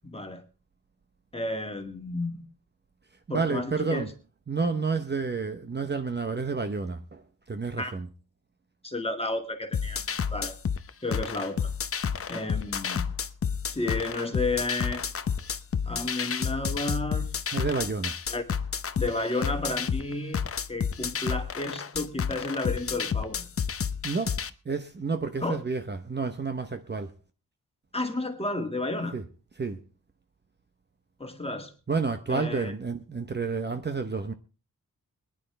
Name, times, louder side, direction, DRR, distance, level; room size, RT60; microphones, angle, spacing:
voice 1, 0.0-0.4 1.3-2.4 3.3-4.1 7.8-7.9 8.8-10.0 10.3-10.6 11.0-11.7 12.3-13.1 13.7-15.0 15.9-17.3 18.3-18.4 19.0-20.4 20.7-23.5 25.4-25.6 27.9-29.2 31.2-31.7 32.3-32.7, left 2 dB, 15° left, 2.1 m, -32 dB
voice 2, 3.3-4.1 4.5-7.2 7.5-8.1 12.2-12.4 17.5-18.1 24.0-24.4 24.7-27.1 29.1-29.2 29.6-29.8 31.9-34.3, right 4 dB, 30° right, 1.0 m, -30 dB
sound 1, 9.7-24.5, left 7 dB, 40° left, 0.7 m, -30 dB
23.0 x 10.5 x 3.4 m
wide cardioid pair, 150°, 35 cm